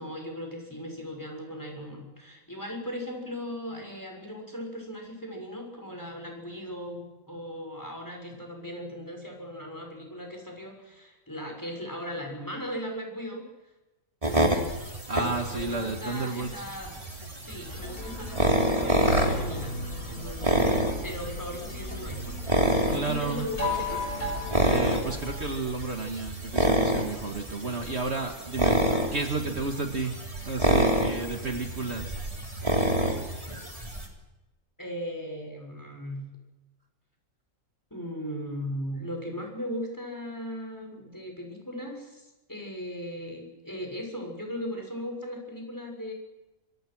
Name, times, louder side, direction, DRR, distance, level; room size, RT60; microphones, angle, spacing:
voice 1, 0.0-13.5 15.4-16.9 17.4-19.7 20.1-20.8 21.0-22.4 22.9-24.0 34.8-36.3 37.9-46.1, equal, 15° left, 1 dB, 6.5 m, -38 dB
sound 1, 14.2-34.1, equal, 25° right, 3.4 m, -28 dB
voice 2, 15.1-16.6 22.9-23.5 24.6-28.8 29.1-32.2, right 3 dB, 50° right, 4 dB, 2.2 m, -32 dB
sound 2, 17.6-25.6, left 2 dB, 75° left, 5.1 m, -36 dB
26.5 x 25.0 x 6.3 m, 1.1 s
omnidirectional pair, 1.5 m